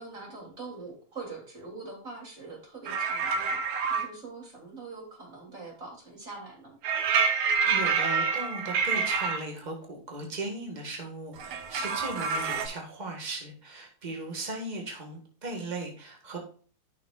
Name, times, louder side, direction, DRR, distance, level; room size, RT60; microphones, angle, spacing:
voice 1, 0.0-3.6 3.9-6.8, right 3 dB, 25° right, -3 dB, 3.2 m, -43 dB
sound 1, 2.9-4.1 6.8-9.4 11.4-12.7, right 5 dB, 65° right, 2.2 m, -27 dB
voice 2, 7.6-16.4, right 2 dB, 50° right, 1 dB, 0.5 m, -37 dB
14.0 x 6.1 x 2.4 m, 0.42 s
omnidirectional pair, 3.9 m